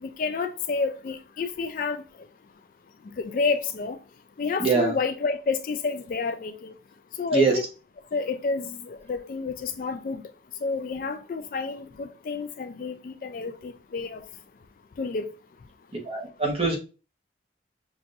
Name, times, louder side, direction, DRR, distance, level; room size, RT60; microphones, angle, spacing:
voice 1, 0.0-2.0 3.2-4.0 4.4-6.7 7.2-7.6 8.1-10.2 10.6-14.2 15.0-15.2, left 4 dB, 45° left, 0.3 m, -29 dB
voice 2, 4.6-4.9 7.3-7.6 16.0-16.8, right 4 dB, 30° right, 1.0 m, -23 dB
5.9 x 2.6 x 2.5 m
head